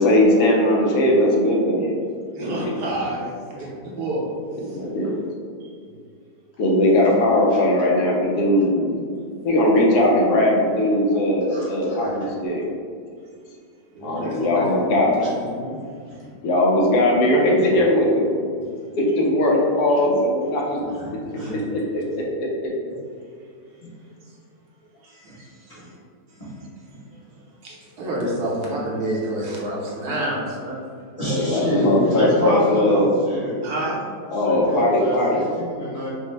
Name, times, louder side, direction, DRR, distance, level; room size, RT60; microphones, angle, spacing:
voice 1, 0.0-1.9 2.4-2.7 4.7-5.1 6.6-9.0 9.4-12.6 14.0-15.2 16.4-18.5 19.0-20.8 21.7-22.0 31.3-33.1 34.3-35.4, left 1 dB, 75° left, -2 dB, 1.2 m, -19 dB
voice 2, 2.3-4.8 5.6-5.7 13.9-15.8 21.3-21.7 25.0-25.9 26.4-26.5 27.6-30.8 33.6-34.0, right 1 dB, 75° right, -5 dB, 1.3 m, -29 dB
voice 3, 31.2-33.5 34.4-36.1, equal, 25° left, -9 dB, 1.0 m, -26 dB
5.3 x 2.0 x 3.2 m, 2.2 s
omnidirectional pair, 1.8 m